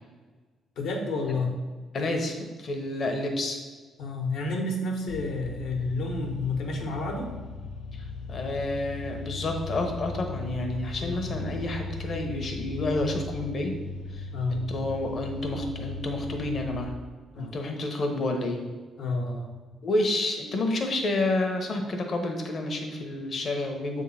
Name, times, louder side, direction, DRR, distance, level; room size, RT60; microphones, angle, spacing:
voice 1, 0.8-1.5 4.0-7.3 11.0-11.2 14.3-14.6 17.3-17.6 19.0-19.5, left 2 dB, 70° left, 2 dB, 1.4 m, -30 dB
voice 2, 1.9-3.6 7.9-13.7 14.1-16.9 17.3-18.7 19.8-24.0, left 2 dB, 40° left, 3 dB, 1.0 m, -29 dB
sound 1, 5.1-16.9, left 3 dB, 85° left, 0.6 m, -37 dB
7.4 x 3.7 x 5.7 m, 1.4 s
cardioid pair, 160°, 0 cm